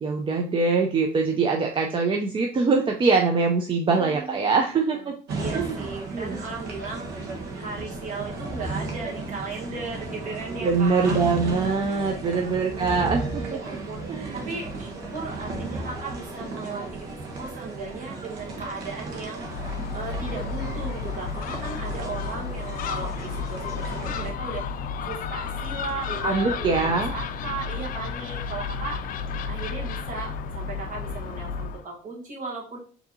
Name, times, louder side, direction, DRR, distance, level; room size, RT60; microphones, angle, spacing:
voice 1, 0.0-5.1 5.5-5.8 6.1-6.4 10.6-13.6 14.1-14.5 26.2-27.1, right 4 dB, 30° right, 2 dB, 0.4 m, -23 dB
voice 2, 3.9-4.5 4.9-5.1 5.3-7.1 7.6-11.2 12.6-26.7 27.1-29.0 29.5-32.8, right 4 dB, 50° right, -1 dB, 1.3 m, -36 dB
sound 1, 5.3-24.3, right 3 dB, 80° right, 1.0 m, -35 dB
Gull seagull, 19.4-31.8, left 6 dB, 55° left, 0.4 m, -32 dB
4.7 x 2.7 x 2.7 m, 0.43 s
cardioid pair, 110°, 17 cm